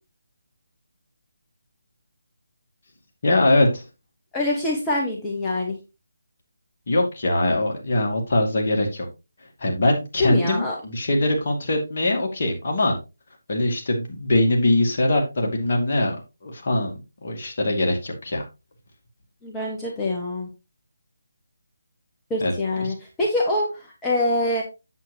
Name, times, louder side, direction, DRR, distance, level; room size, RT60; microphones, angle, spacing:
voice 1, 3.2-3.8 6.9-9.1 9.6-13.0 13.5-16.2 16.4-18.4 22.4-22.5, left 1 dB, 40° left, 1 dB, 2.2 m, -22 dB
voice 2, 4.3-5.8 10.2-10.7 19.4-20.5 22.3-24.6, left 1 dB, 10° left, -3 dB, 1.3 m, -25 dB
8.2 x 7.9 x 2.9 m, 0.27 s
figure-of-eight pair, 150°, 0 cm